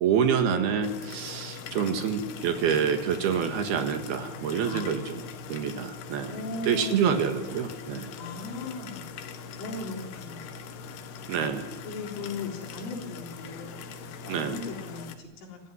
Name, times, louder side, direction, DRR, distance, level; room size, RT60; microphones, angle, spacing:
voice 1, 0.0-5.2 5.5-6.3 6.7-8.1 11.3-11.7 14.3-14.6, right 7 dB, 65° right, 6 dB, 3.2 m, -27 dB
sound 1, 0.8-15.2, left 5 dB, 65° left, 3.2 m, -41 dB
voice 2, 4.6-5.1 6.3-7.3 8.2-9.1 9.6-10.8 11.8-15.6, left 3 dB, 85° left, 1 dB, 6.4 m, -38 dB
26.5 x 14.5 x 9.9 m, 1.1 s
omnidirectional pair, 5.4 m